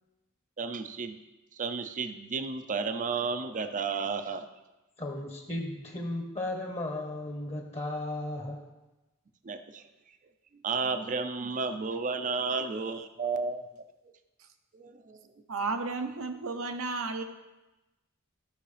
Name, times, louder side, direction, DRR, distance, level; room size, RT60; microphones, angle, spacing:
voice 1, 0.6-1.2 1.5-4.5 9.4-9.8 10.6-13.6 14.7-15.3, right 4 dB, 40° right, 9 dB, 0.5 m, -32 dB
voice 2, 5.0-8.6, left 1 dB, 30° left, 1 dB, 1.1 m, -35 dB
voice 3, 15.5-17.2, right 3 dB, 75° right, 7 dB, 0.8 m, -33 dB
13.0 x 6.3 x 3.3 m, 1.1 s
head